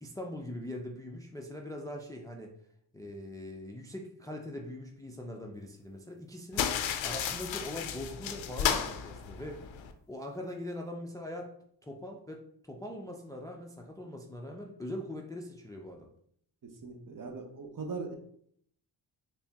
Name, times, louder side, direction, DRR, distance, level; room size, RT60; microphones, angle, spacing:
voice 1, 0.0-2.5 2.9-6.7 7.0-9.7 10.1-11.5 11.8-16.1, left 1 dB, 10° left, 2 dB, 0.4 m, -41 dB
sound 1, 6.5-9.9, left 8 dB, 80° left, 0.5 m, -33 dB
voice 2, 16.6-18.2, right 4 dB, 45° right, 3 dB, 0.8 m, -40 dB
4.3 x 2.0 x 3.4 m, 0.66 s
cardioid pair, 65°, 46 cm